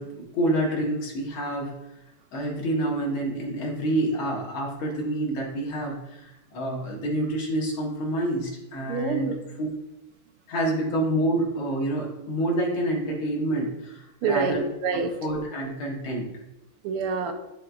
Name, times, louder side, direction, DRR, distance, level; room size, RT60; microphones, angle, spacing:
voice 1, 0.0-1.7 2.3-9.7 10.5-14.6 15.2-16.3, right 1 dB, 70° left, -2 dB, 2.2 m, -28 dB
voice 2, 8.9-9.4 14.2-15.1 16.8-17.3, right 5 dB, 85° right, 7 dB, 1.6 m, -26 dB
11.0 x 3.7 x 2.3 m, 0.96 s
omnidirectional pair, 2.4 m